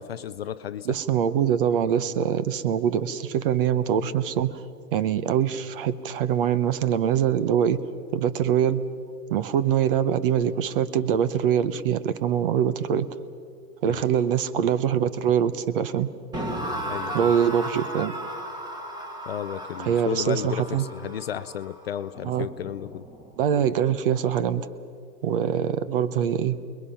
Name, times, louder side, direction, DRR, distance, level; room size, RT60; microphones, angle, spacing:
voice 1, 0.0-1.0 13.9-14.0 16.8-17.3 19.3-23.1, left 10 dB, 40° left, 13 dB, 0.5 m, -33 dB
voice 2, 0.9-4.6 4.9-7.8 8.1-8.9 9.3-13.1 13.8-16.1 17.1-18.1 19.8-20.8 22.2-22.5 23.4-24.7 25.2-26.6, right 9 dB, 35° right, 15 dB, 0.8 m, -23 dB
sound 1, 16.3-23.4, right 1 dB, 10° right, 1.4 m, -35 dB
29.5 x 21.5 x 5.8 m, 2.4 s
hypercardioid pair, 150°, 50 cm